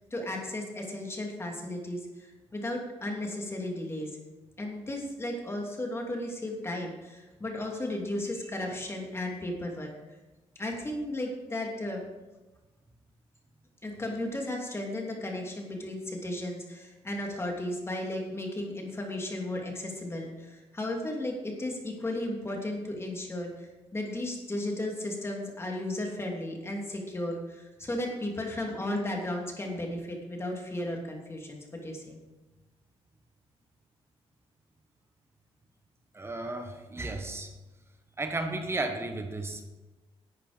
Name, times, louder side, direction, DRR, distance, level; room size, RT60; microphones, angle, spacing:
voice 1, 0.1-4.1 4.6-9.9 10.6-12.0 13.8-32.2, left 1 dB, 25° left, 1 dB, 2.8 m, -35 dB
voice 2, 36.1-37.5 38.2-39.6, right 2 dB, 25° right, 5 dB, 1.5 m, -34 dB
11.5 x 8.3 x 5.2 m, 1.1 s
cardioid pair, 105°, 11 cm